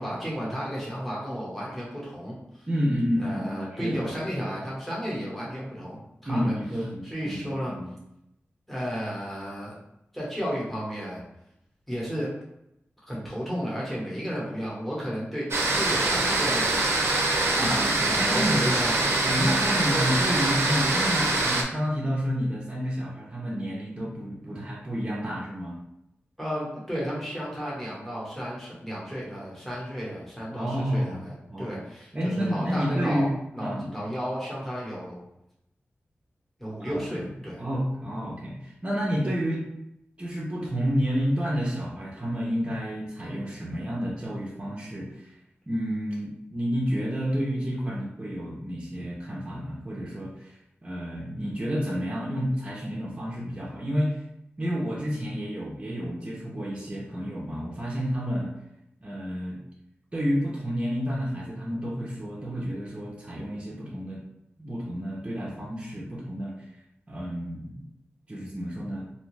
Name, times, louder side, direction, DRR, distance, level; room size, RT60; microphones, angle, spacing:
voice 1, 0.0-2.7 3.2-6.5 7.0-7.7 8.7-9.7 10.1-11.2 11.9-12.3 13.1-16.8 18.1-18.9 19.6-20.0 26.4-33.3 33.5-35.2 36.6-37.6, equal, 5° left, -6 dB, 1.1 m, -33 dB
voice 2, 2.7-4.0 6.2-7.9 17.6-18.6 19.2-25.8 30.5-31.8 32.1-33.9 36.8-37.3 37.6-39.7 40.2-45.3 45.7-54.2 54.6-58.5 59.0-59.6 60.1-64.2 64.6-66.5 67.1-67.9 68.3-69.0, equal, 25° right, -3 dB, 0.6 m, -30 dB
sound 1, 15.5-21.6, right 2 dB, 70° right, 0.5 m, -24 dB
2.6 x 2.3 x 3.1 m, 0.83 s
wide cardioid pair, 105°, 4 cm